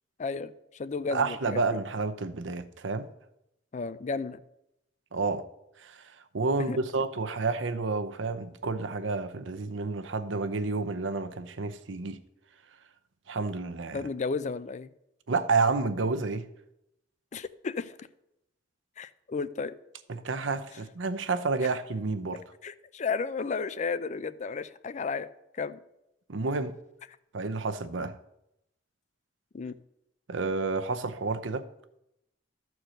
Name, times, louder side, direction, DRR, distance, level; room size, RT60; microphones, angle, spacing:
voice 1, 0.2-1.7 3.7-4.4 6.6-6.8 13.9-14.9 17.3-18.1 19.0-19.7 22.6-25.3 25.6-25.8 29.5-29.8, left 4 dB, 40° left, 0.4 m, -33 dB
voice 2, 1.1-3.1 5.1-5.5 5.8-6.0 6.3-12.2 13.3-14.0 15.3-16.5 20.1-22.4 26.3-26.7 27.3-28.2 30.3-31.7, right 3 dB, 85° right, 0.7 m, -30 dB
13.0 x 4.6 x 6.3 m
head